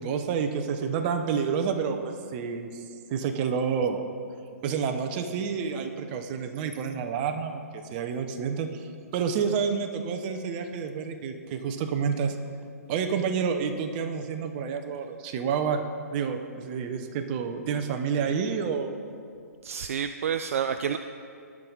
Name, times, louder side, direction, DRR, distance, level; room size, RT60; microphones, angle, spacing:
voice 1, 0.0-2.8 3.1-4.0 4.6-12.4 12.9-15.8 16.1-18.9, right 6 dB, 35° right, 6 dB, 0.9 m, -29 dB
voice 2, 19.6-21.0, right 8 dB, 55° right, 9 dB, 0.4 m, -29 dB
18.0 x 6.2 x 4.0 m, 2.3 s
figure-of-eight pair, 130°, 9 cm